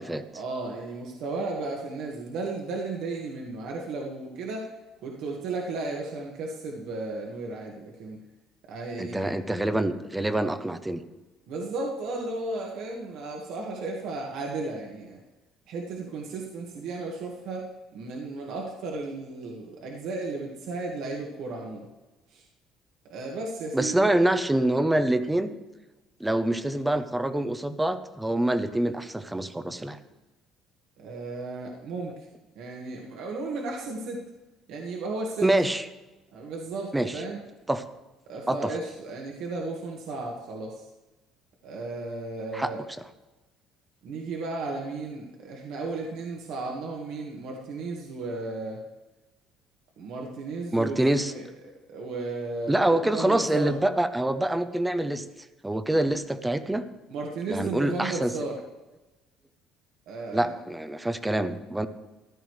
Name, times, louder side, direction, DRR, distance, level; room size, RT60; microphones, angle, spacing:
voice 1, 0.0-4.7 5.0-8.2 8.7-9.4 11.5-15.2 15.7-17.7 17.9-21.9 22.3-22.4 23.0-24.2 24.8-24.9 31.0-32.2 32.5-34.2 34.7-35.5 36.3-37.4 38.3-40.9 41.6-42.8 44.0-48.8 50.0-51.0 51.2-51.4 51.9-53.8 57.1-58.6 60.1-60.5, right 3 dB, 65° right, 0 dB, 1.6 m, -34 dB
voice 2, 9.0-11.0 23.7-25.5 26.2-30.0 35.4-35.9 36.9-37.2 37.7-37.8 38.5-38.7 42.5-42.7 50.7-51.3 52.7-55.2 55.6-56.8 57.5-58.3 60.3-61.9, right 1 dB, 5° right, 12 dB, 0.6 m, -25 dB
14.5 x 12.5 x 3.2 m, 1.1 s
cardioid pair, 155°, 0 cm